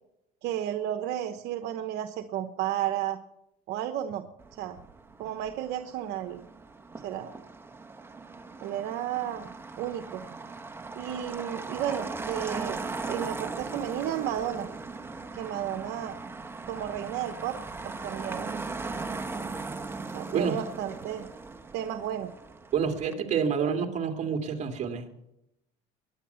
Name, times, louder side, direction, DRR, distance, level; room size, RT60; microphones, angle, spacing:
voice 1, 0.4-3.2 3.7-4.2 4.5-4.8 5.2-6.4 7.0-7.3 8.6-9.5 9.8-10.2 10.9-12.8 13.1-14.7 15.3-16.2 16.7-17.6 17.8-18.6 20.1-21.3 21.7-22.3, right 11 dB, 70° right, 8 dB, 1.0 m, -33 dB
Motor vehicle (road), 4.4-23.1, right 3 dB, 10° right, 1.1 m, -39 dB
voice 2, 22.7-25.3, right 6 dB, 40° right, 4 dB, 2.5 m, -28 dB
21.5 x 9.6 x 5.7 m, 0.85 s
cardioid pair, 115°, 18 cm